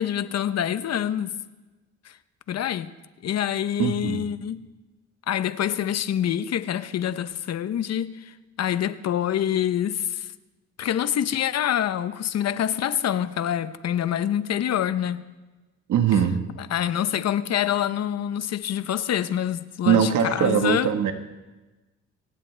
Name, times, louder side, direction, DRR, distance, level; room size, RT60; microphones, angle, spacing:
voice 1, 0.0-1.3 2.0-2.2 2.5-2.9 3.2-4.7 5.3-10.3 10.8-15.2 16.6-20.9, left 10 dB, 60° left, 0.9 m, -26 dB
voice 2, 3.8-4.2 15.9-16.4 19.8-21.1, right 8 dB, 75° right, 1.6 m, -21 dB
24.5 x 17.0 x 3.4 m
cardioid pair, 90°, 30 cm